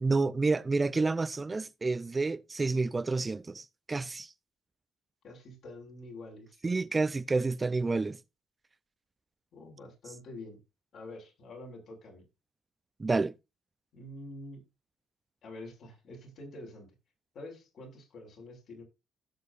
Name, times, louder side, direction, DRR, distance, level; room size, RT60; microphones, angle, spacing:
voice 1, 0.0-4.3 6.6-8.2 13.0-13.3, right 3 dB, 25° right, 0.6 m, -29 dB
voice 2, 5.2-6.6 9.5-10.6 10.9-12.2 13.9-14.6 15.4-16.9 17.3-18.8, left 2 dB, 65° left, 5.8 m, -46 dB
16.5 x 6.4 x 2.6 m
supercardioid pair, 65°, 0 cm